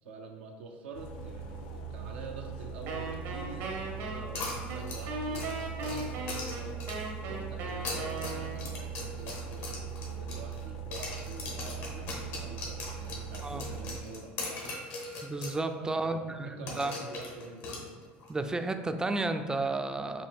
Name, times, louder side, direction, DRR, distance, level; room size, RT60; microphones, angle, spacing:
voice 1, 0.0-5.5 5.8-6.9 7.3-14.6 15.7-17.8, right 4 dB, 85° right, 2 dB, 0.4 m, -47 dB
sound 1, 0.9-14.0, right 6 dB, 85° left, 0.4 m, -40 dB
Wind instrument woodwind instrument, 2.9-8.9, right 2 dB, 70° right, 0.8 m, -38 dB
sound 2, 4.3-7.2 7.7-10.6 10.9-15.6 15.9-16.0 16.7-18.3, left 3 dB, 70° left, 1.1 m, -40 dB
voice 2, 15.2-16.9 18.3-20.3, right 2 dB, 15° right, 8 dB, 0.3 m, -32 dB
5.4 x 2.2 x 3.5 m, 1.5 s
hypercardioid pair, 80°, 5 cm